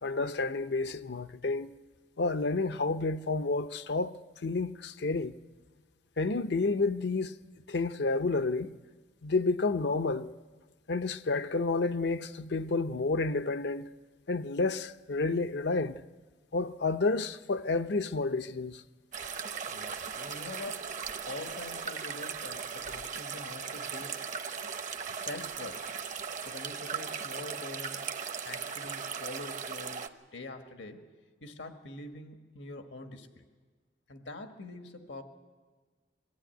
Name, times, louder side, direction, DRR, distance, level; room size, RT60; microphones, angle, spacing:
voice 1, 0.0-1.7 2.2-4.1 4.4-5.3 6.2-7.3 7.7-8.8 9.2-10.3 10.9-13.9 14.3-16.0 16.5-18.8, left 3 dB, 65° left, 0.7 m, -30 dB
sound 1, 19.1-30.1, right 6 dB, 45° right, 0.9 m, -38 dB
voice 2, 19.7-20.9 21.2-24.2 25.1-25.9 26.4-28.0 28.4-31.1 31.4-33.4 34.1-35.2, left 2 dB, 90° left, 1.6 m, -44 dB
21.5 x 15.0 x 9.1 m
head